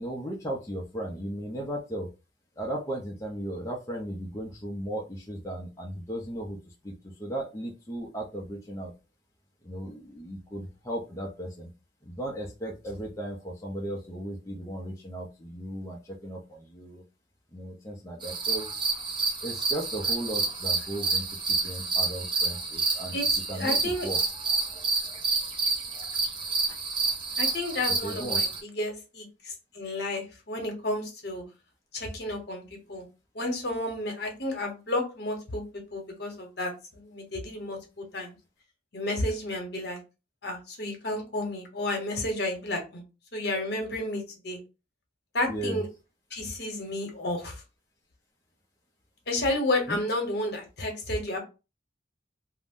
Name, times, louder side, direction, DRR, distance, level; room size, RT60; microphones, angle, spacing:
voice 1, 0.0-2.1 2.6-8.9 9.6-11.7 12.0-17.0 17.5-18.7 19.4-21.3 21.6-23.1 23.5-24.2 26.7-26.8 28.0-28.5 45.5-45.8 49.9-50.0, right 1 dB, 15° left, -2 dB, 0.5 m, -36 dB
sound 1, 18.2-28.6, right 4 dB, 25° right, 0.6 m, -29 dB
voice 2, 23.5-24.1 27.4-31.4 31.9-33.0 33.3-38.3 38.9-40.0 40.4-43.0 43.3-44.6 45.3-45.8 46.3-47.5 49.3-51.4, left 1 dB, 60° left, 3 dB, 0.9 m, -31 dB
2.5 x 2.1 x 3.5 m, 0.30 s
head